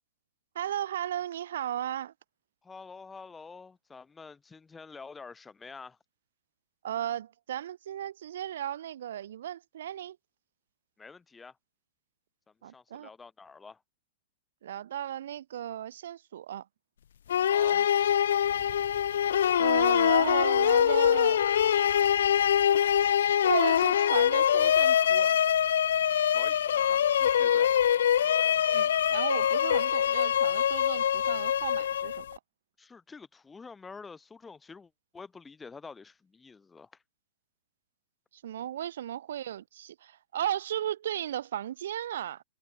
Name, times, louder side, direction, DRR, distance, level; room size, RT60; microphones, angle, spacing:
voice 1, 0.6-2.1 6.8-10.2 12.6-13.1 14.6-16.7 19.6-21.4 23.4-25.3 28.7-32.3 38.3-42.4, right 11 dB, 70° right, 3.8 m, -35 dB
voice 2, 2.6-6.0 11.0-11.6 12.7-13.8 17.5-17.9 26.3-27.7 32.8-36.9, left 4 dB, 10° left, 4.4 m, -48 dB
sound 1, 17.3-32.4, left 9 dB, 75° left, 0.5 m, -24 dB
Bicycle, 18.4-23.9, right 21 dB, 50° right, 6.0 m, -56 dB
hypercardioid pair, 125°, 0 cm